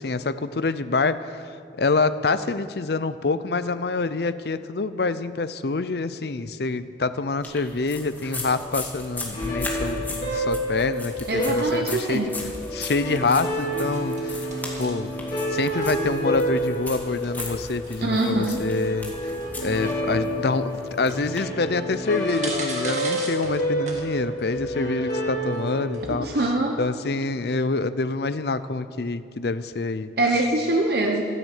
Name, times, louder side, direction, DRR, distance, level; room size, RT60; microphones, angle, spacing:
voice 1, 0.0-12.2 12.7-14.5 14.8-15.1 15.5-19.1 19.6-26.5 26.8-30.4, left 3 dB, 60° left, 13 dB, 0.6 m, -26 dB
sound 1, 7.4-21.4, left 2 dB, 10° left, 2.0 m, -38 dB
sound 2, 8.4-25.8, equal, 40° left, 4.3 m, -29 dB
sound 3, 11.1-27.2, right 2 dB, 40° right, 2.1 m, -41 dB
voice 2, 11.3-12.4 18.0-18.6 26.1-26.8 30.2-31.2, right 2 dB, 60° right, 2 dB, 1.0 m, -24 dB
13.0 x 11.0 x 8.3 m, 2.4 s
head